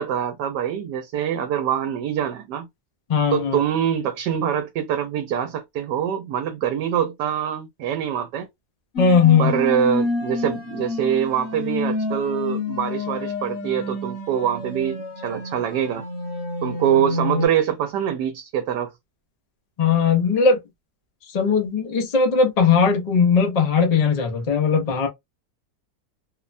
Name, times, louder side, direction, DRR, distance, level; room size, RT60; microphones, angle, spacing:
voice 1, 0.0-2.7 3.3-8.5 9.4-16.0 16.6-18.9, right 9 dB, 85° right, 1.2 m, -24 dB
voice 2, 3.1-3.6 9.0-9.6 19.8-20.6 21.3-25.1, left 5 dB, 75° left, 0.3 m, -18 dB
sound 1, 9.0-17.5, left 2 dB, 55° left, 1.1 m, -29 dB
3.0 x 2.1 x 2.4 m
omnidirectional pair, 1.8 m